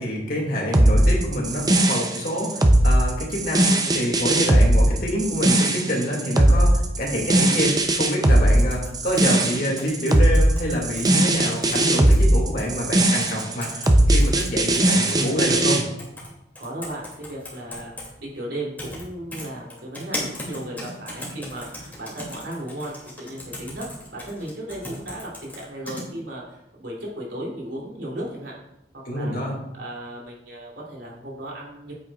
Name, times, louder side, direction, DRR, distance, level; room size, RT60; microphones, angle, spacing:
voice 1, 0.0-3.7 3.9-15.8 29.1-29.5, equal, 55° left, -1 dB, 2.4 m, -27 dB
sound 1, 0.7-15.8, right 1 dB, 20° right, 0.6 m, -19 dB
sound 2, 8.6-11.1 11.5-12.2 12.6-12.7 13.2-13.9 14.2-15.2 16.0-16.3 16.6-18.1 18.8-19.0 19.3-26.0, left 1 dB, 10° left, 2.7 m, -37 dB
voice 2, 14.9-15.4 16.6-28.5 28.9-29.5 29.7-31.9, right 1 dB, 80° right, -4 dB, 3.2 m, -35 dB
8.8 x 8.5 x 2.5 m, 0.87 s
head